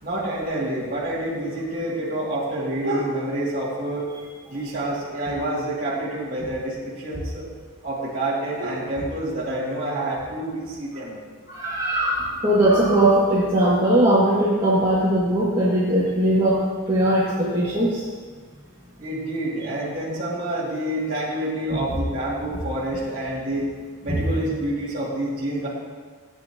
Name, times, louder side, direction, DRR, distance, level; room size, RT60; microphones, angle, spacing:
voice 1, 0.0-4.0 4.5-7.4 7.8-11.2 19.0-23.7 24.0-25.7, right 1 dB, 40° right, -9 dB, 2.6 m, -28 dB
voice 2, 11.5-16.6 16.9-18.0 24.1-24.2, right 1 dB, 20° right, -10 dB, 2.1 m, -20 dB
17.5 x 9.7 x 3.0 m, 1.5 s
head